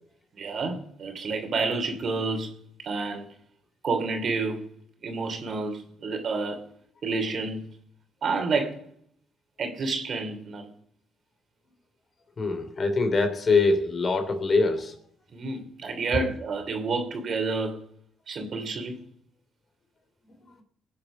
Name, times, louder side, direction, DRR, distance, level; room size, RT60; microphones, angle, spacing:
voice 1, 0.3-3.3 3.8-4.7 5.0-6.7 7.0-7.7 8.2-8.8 9.6-10.7 15.3-17.8 18.3-19.0, right 3 dB, 55° right, 2.9 m, -29 dB
voice 2, 12.4-14.9, left 3 dB, 40° left, 2.9 m, -23 dB
21.5 x 8.7 x 5.0 m
cardioid pair, 90°, 0 cm